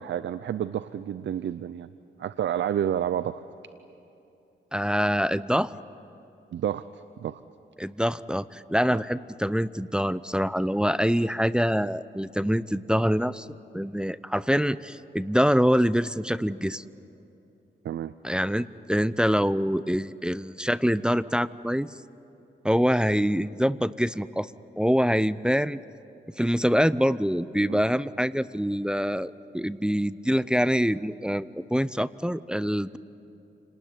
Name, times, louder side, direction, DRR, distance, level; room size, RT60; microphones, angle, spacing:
voice 1, 0.0-1.9 2.2-3.4 6.5-6.9 7.2-7.4 8.9-9.0 17.8-18.1 27.7-27.8, right 10 dB, 70° right, 14 dB, 0.6 m, -29 dB
voice 2, 4.7-5.7 7.8-16.8 18.2-21.9 22.6-24.5 24.8-25.8 26.4-33.0, equal, 5° right, 15 dB, 0.6 m, -25 dB
29.0 x 19.5 x 9.9 m, 2.8 s
cardioid pair, 75°, 20 cm